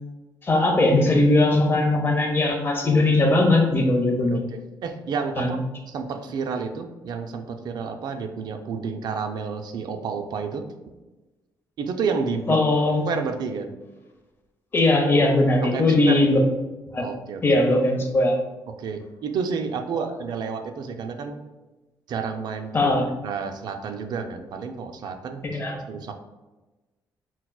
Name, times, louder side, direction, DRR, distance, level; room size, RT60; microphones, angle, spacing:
voice 1, 0.4-4.4 5.4-5.5 12.5-13.0 14.7-16.4 16.9-17.1 17.4-18.4 20.0-20.1 22.7-23.0 25.4-25.8, left 2 dB, 30° left, 1 dB, 0.8 m, -19 dB
voice 2, 4.3-10.7 11.8-12.6 13.1-13.7 15.6-16.2 17.0-17.4 18.7-21.4 22.1-26.1, right 5 dB, 65° right, 7 dB, 0.4 m, -30 dB
5.6 x 2.2 x 2.3 m, 1.1 s
cardioid pair, 95°, 8 cm